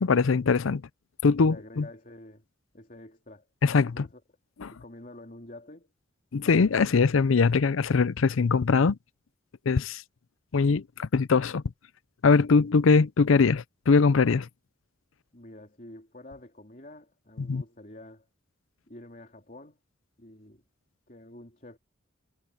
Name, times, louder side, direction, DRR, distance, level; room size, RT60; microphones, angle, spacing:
voice 1, 0.0-0.8 1.2-1.9 3.6-4.1 4.6-4.7 6.3-9.0 9.7-10.0 10.5-11.6 12.2-14.5 17.4-17.6, left 4 dB, 80° left, 0.5 m, -22 dB
voice 2, 1.4-2.4 2.7-3.5 3.8-4.2 4.7-5.9 15.3-18.3 18.9-19.8 20.2-20.6 21.1-21.8, left 1 dB, 40° left, 3.3 m, -48 dB
head